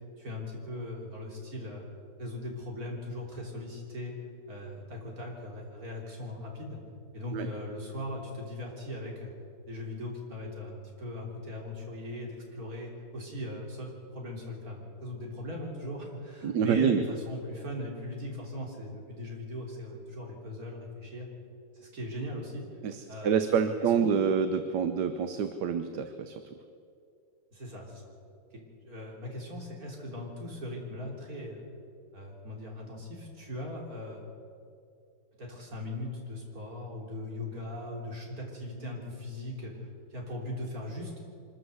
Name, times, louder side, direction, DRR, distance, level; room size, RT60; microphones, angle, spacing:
voice 1, 0.2-1.8 2.2-4.1 4.5-6.8 7.1-9.3 9.7-21.3 21.7-22.6 23.1-24.2 27.5-28.1 28.5-31.7 32.1-34.2 35.4-39.7 40.1-41.2, left 1 dB, 45° right, -1 dB, 3.9 m, -39 dB
voice 2, 16.4-17.0 22.8-26.4, right 7 dB, 65° right, 9 dB, 1.4 m, -27 dB
24.5 x 13.5 x 7.9 m, 2.5 s
omnidirectional pair, 2.1 m